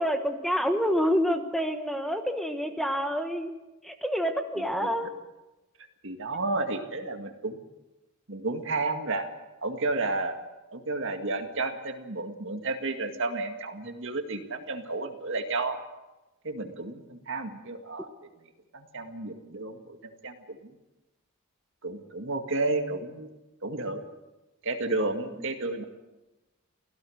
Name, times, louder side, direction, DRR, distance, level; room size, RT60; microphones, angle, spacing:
voice 1, 0.0-3.5 3.8-5.1, equal, ahead, 6 dB, 1.2 m, -27 dB
voice 2, 4.6-4.9 6.0-7.6 8.3-9.3 9.6-10.4 10.7-15.8 16.4-18.1 18.7-20.0 20.2-20.7 21.8-23.3 23.6-24.0 24.6-25.8, right 2 dB, 60° right, 6 dB, 2.0 m, -32 dB
25.0 x 16.5 x 6.5 m, 1.1 s
head